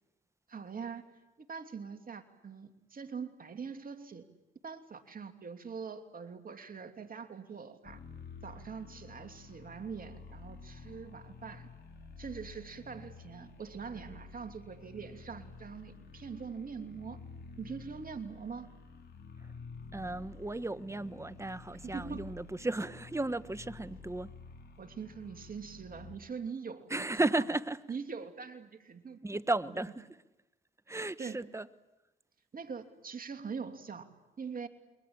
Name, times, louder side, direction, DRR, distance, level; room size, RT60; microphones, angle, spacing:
voice 1, 0.5-1.1 1.4-4.3 4.6-8.0 8.4-11.7 12.2-17.2 17.6-18.7 21.8-22.3 24.8-27.4 27.9-29.2 29.7-29.9 30.9-31.4 32.5-34.1 34.4-34.7, right 5 dB, 45° right, 2.8 m, -43 dB
sound 1, 7.8-26.2, left 4 dB, 55° left, 3.5 m, -50 dB
voice 2, 19.9-24.3 26.9-27.8 29.2-30.1 30.9-31.7, right 2 dB, 15° right, 1.2 m, -34 dB
29.5 x 23.0 x 8.8 m
supercardioid pair, 55°, 20 cm